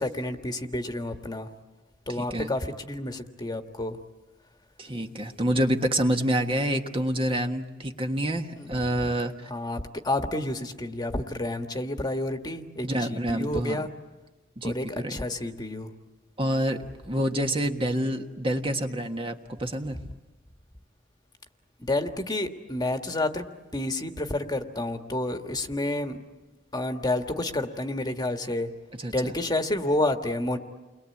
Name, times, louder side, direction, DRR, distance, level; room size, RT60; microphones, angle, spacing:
voice 1, 0.0-1.5 2.1-4.0 8.5-9.0 9.5-13.9 14.6-15.9 20.1-20.2 21.8-23.5 23.7-26.2 26.7-28.7 29.1-30.6, left 2 dB, 20° left, 6 dB, 1.6 m, -30 dB
voice 2, 2.2-2.5 4.8-9.5 12.8-13.8 14.6-15.2 16.4-20.0 29.0-29.3, right 1 dB, 30° right, 4 dB, 1.5 m, -27 dB
30.0 x 22.5 x 8.5 m, 1.3 s
head